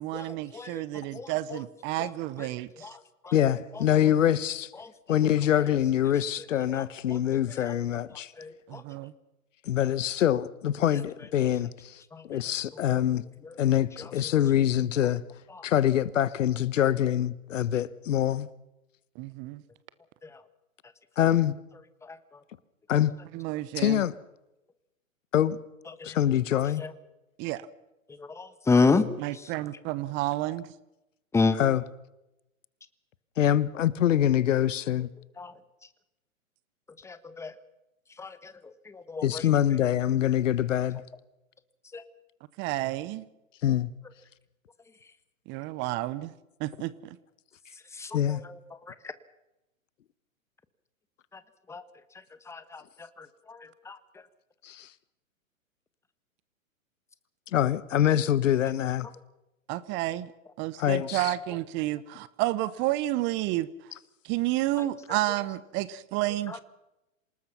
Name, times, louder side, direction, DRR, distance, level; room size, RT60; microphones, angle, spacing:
voice 1, 0.0-2.9 8.7-9.1 19.2-19.6 23.3-24.0 27.4-27.6 29.2-30.7 42.6-43.2 45.5-46.3 46.6-47.2 59.7-60.3 60.6-63.7 64.2-66.6, right 16 dB, 25° right, 0.9 m, -31 dB
voice 2, 0.5-0.8 1.1-1.3 4.8-4.9 7.1-7.2 8.4-8.8 12.1-12.2 12.9-13.0 26.0-26.1 26.8-26.9 28.4-29.1 31.3-31.5 35.4-35.5 37.0-37.5 38.2-38.5 38.9-39.4 41.9-42.0 48.0-48.4 51.7-51.8 52.5-52.8 53.5-53.6 53.9-54.0, left 4 dB, 5° left, 1.2 m, -27 dB
voice 3, 3.3-4.7 5.1-8.3 9.7-11.7 12.3-13.2 13.6-15.2 15.6-18.5 21.2-21.5 22.9-23.1 23.8-24.1 25.3-25.6 26.0-26.8 31.5-31.8 33.4-35.1 39.2-41.0 43.6-43.9 48.1-48.4 54.6-54.9 57.5-59.1 60.8-61.2, left 11 dB, 60° left, 1.3 m, -24 dB
27.0 x 19.0 x 5.9 m
hypercardioid pair, 120°, 41 cm